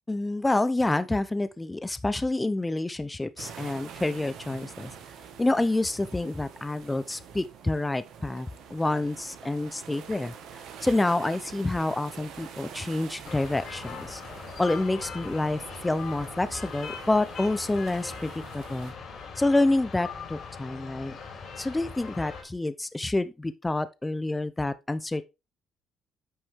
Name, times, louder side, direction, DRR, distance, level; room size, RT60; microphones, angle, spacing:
voice 1, 0.1-4.9 5.4-10.3 10.8-14.2 14.6-18.9 19.4-21.1 21.6-25.2, left 2 dB, 15° left, 0.7 m, -28 dB
sound 1, 3.4-18.9, right 7 dB, 80° right, 1.7 m, -46 dB
sound 2, 13.2-22.4, left 5 dB, 55° left, 4.4 m, -40 dB
9.6 x 6.1 x 3.7 m
supercardioid pair, 80°, 0 cm